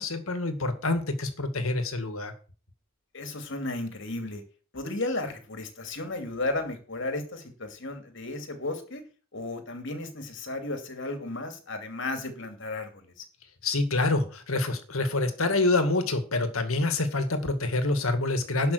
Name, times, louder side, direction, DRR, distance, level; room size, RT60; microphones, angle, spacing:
voice 1, 0.0-2.3 13.6-18.7, left 2 dB, 80° left, 8 dB, 2.0 m, -26 dB
voice 2, 3.1-4.4 4.7-9.0 9.3-13.1, left 2 dB, 60° left, 6 dB, 2.7 m, -34 dB
11.5 x 5.8 x 8.0 m, 0.38 s
head